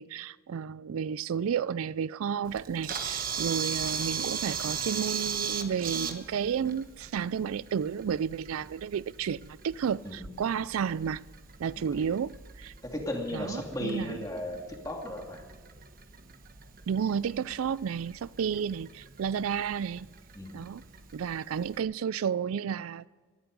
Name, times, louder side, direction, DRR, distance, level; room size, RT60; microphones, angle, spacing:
voice 1, 0.0-11.2 11.6-12.7 13.3-14.2 16.9-20.1 20.5-20.8 21.1-23.1, right 7 dB, 80° right, 0.4 m, -32 dB
Camera, 2.5-21.8, right 6 dB, 40° right, 1.2 m, -39 dB
voice 2, 12.8-15.4 20.3-20.6, left 1 dB, 15° left, 2.5 m, -35 dB
19.5 x 13.5 x 5.3 m
head